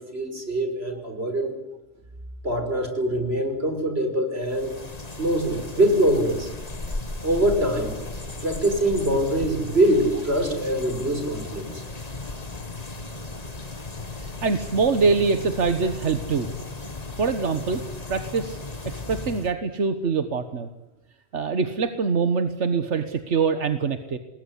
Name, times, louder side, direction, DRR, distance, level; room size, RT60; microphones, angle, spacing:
voice 1, 0.1-1.5 2.4-4.7 5.2-6.5 7.2-8.0 8.4-11.8, right 1 dB, 65° right, 6 dB, 5.7 m, -23 dB
sound 1, 4.4-19.5, left 3 dB, 35° left, 2.1 m, -36 dB
voice 2, 14.2-16.5 17.2-17.8 18.1-18.6 18.8-20.7 21.3-24.2, right 5 dB, 90° right, 8 dB, 1.7 m, -24 dB
28.0 x 20.5 x 9.9 m, 1.0 s
omnidirectional pair, 1.2 m